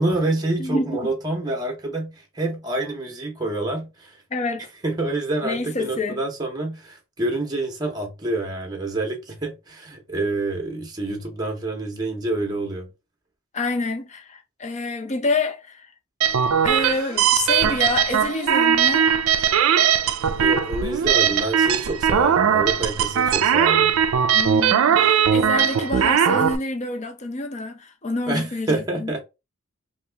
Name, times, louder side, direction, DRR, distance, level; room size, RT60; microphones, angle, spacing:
voice 1, 0.0-4.2 4.8-12.9 20.4-24.0 28.3-29.2, right 2 dB, 20° right, 0.7 m, -27 dB
voice 2, 0.6-1.0 4.3-4.7 5.4-6.2 13.5-15.9 16.6-19.1 24.3-29.1, left 3 dB, 35° left, 0.6 m, -27 dB
sound 1, 16.2-26.6, right 8 dB, 75° right, 0.4 m, -19 dB
2.9 x 2.5 x 3.3 m
head